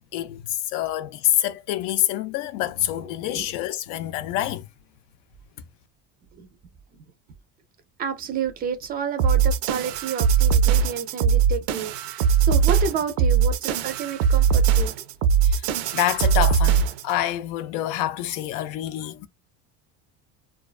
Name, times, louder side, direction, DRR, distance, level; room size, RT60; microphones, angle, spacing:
voice 1, 0.1-4.7 15.4-15.6 15.9-19.3, left 12 dB, 80° left, 0.5 m, -26 dB
voice 2, 8.0-14.9, right 7 dB, 30° right, 0.4 m, -30 dB
sound 1, 9.2-17.1, right 7 dB, 90° right, 0.5 m, -20 dB
2.3 x 2.2 x 2.3 m
cardioid pair, 160°, 31 cm